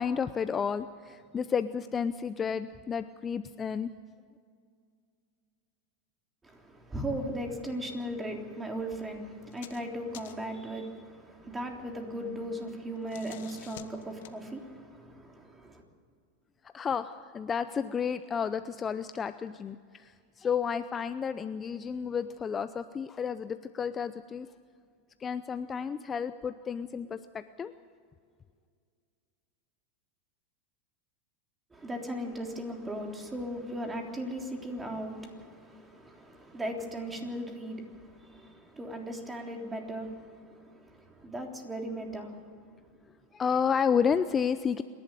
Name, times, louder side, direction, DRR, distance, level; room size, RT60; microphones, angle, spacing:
voice 1, 0.0-3.9 16.7-24.5 25.2-27.7 43.3-44.8, left 6 dB, 25° left, 12 dB, 0.6 m, -31 dB
voice 2, 6.4-15.8 31.7-42.5, right 1 dB, 15° right, 2 dB, 3.5 m, -38 dB
sound 1, 9.4-9.9 10.1-10.6 12.8-14.4, left 13 dB, 70° left, 1.2 m, -49 dB
27.0 x 11.5 x 9.2 m, 2.1 s
hypercardioid pair, 100°, 0 cm